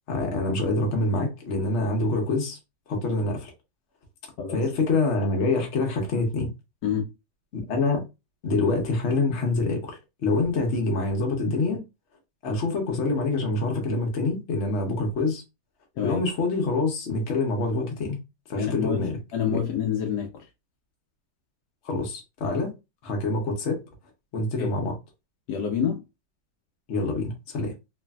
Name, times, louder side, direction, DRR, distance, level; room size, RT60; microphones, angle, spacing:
voice 1, 0.1-2.6 2.9-3.5 4.5-6.5 7.5-8.0 8.4-11.8 12.4-15.4 16.0-18.2 18.5-19.2 19.5-19.6 21.8-22.7 23.0-23.8 24.3-25.0 26.9-27.7, left 3 dB, 60° left, 0.7 m, -26 dB
voice 2, 18.6-20.3 24.6-24.7 25.5-26.0, left 8 dB, 90° left, 0.9 m, -27 dB
3.2 x 2.4 x 2.3 m
omnidirectional pair, 2.3 m